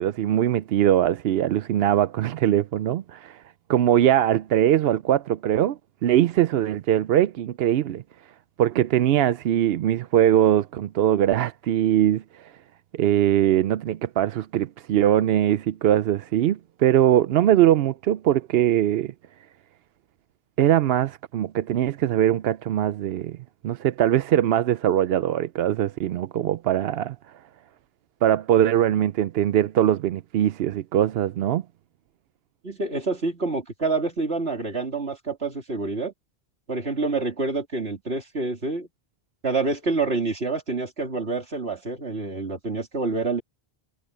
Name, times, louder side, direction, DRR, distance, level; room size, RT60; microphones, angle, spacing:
voice 1, 0.0-3.4 3.7-8.0 8.6-12.5 12.9-19.1 20.6-23.4 23.6-27.2 28.2-31.6, right 11 dB, 75° right, 0.8 m, -21 dB
voice 2, 32.6-36.1 36.7-38.9 39.4-43.4, right 3 dB, 90° right, 3.6 m, -27 dB
omnidirectional pair, 1.0 m